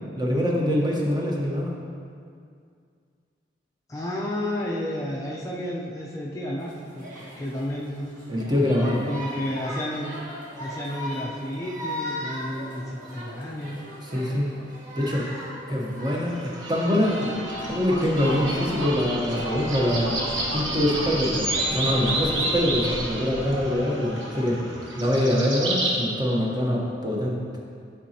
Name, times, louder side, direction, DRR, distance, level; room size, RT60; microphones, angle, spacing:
voice 1, 0.2-1.7 8.3-9.0 14.1-14.5 15.0-15.3 15.7-17.4 17.7-20.2 20.5-24.6 25.0-27.4, left 1 dB, 20° right, -2 dB, 0.9 m, -24 dB
voice 2, 3.9-8.1 9.1-10.1 10.6-13.8, left 1 dB, 15° left, -4 dB, 0.5 m, -31 dB
sound 1, 6.6-20.2, equal, 45° right, 1.6 m, -39 dB
sound 2, 16.3-25.9, right 1 dB, 90° right, 1.1 m, -29 dB
10.5 x 4.9 x 2.8 m, 2.3 s
head